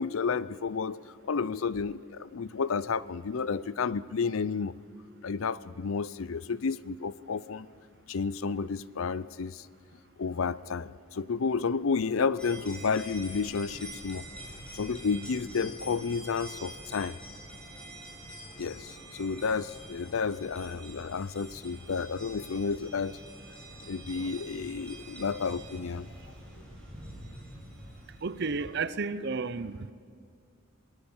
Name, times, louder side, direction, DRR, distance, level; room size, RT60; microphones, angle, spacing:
voice 1, 0.0-4.7 5.2-7.7 8.1-9.7 10.2-14.3 14.7-17.2 18.6-23.2 23.8-26.1, left 5 dB, 70° left, 18 dB, 0.5 m, -31 dB
sound 1, 12.4-28.8, right 1 dB, 5° left, 5.9 m, -46 dB
voice 2, 28.2-29.9, right 4 dB, 55° right, 15 dB, 0.7 m, -32 dB
27.5 x 18.5 x 7.2 m, 2.2 s
head